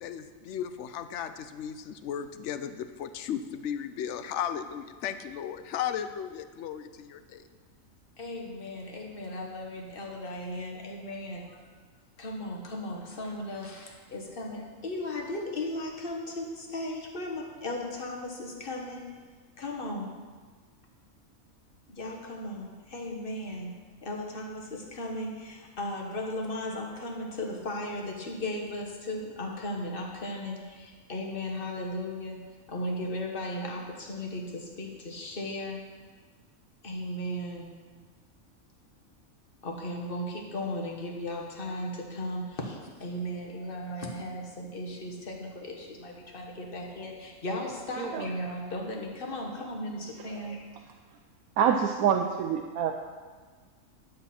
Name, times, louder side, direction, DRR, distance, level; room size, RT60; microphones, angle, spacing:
voice 1, 0.0-7.4, left 9 dB, 65° left, 11 dB, 0.8 m, -35 dB
voice 2, 8.2-11.6 12.2-19.0 19.6-20.1 21.9-23.7 24.0-35.8 36.8-37.7 39.6-50.7, left 1 dB, 40° left, 0 dB, 1.4 m, -36 dB
voice 3, 48.0-48.3 50.2-50.6 51.6-53.0, right 8 dB, 85° right, 4 dB, 1.1 m, -27 dB
10.5 x 7.7 x 4.3 m, 1.5 s
omnidirectional pair, 1.5 m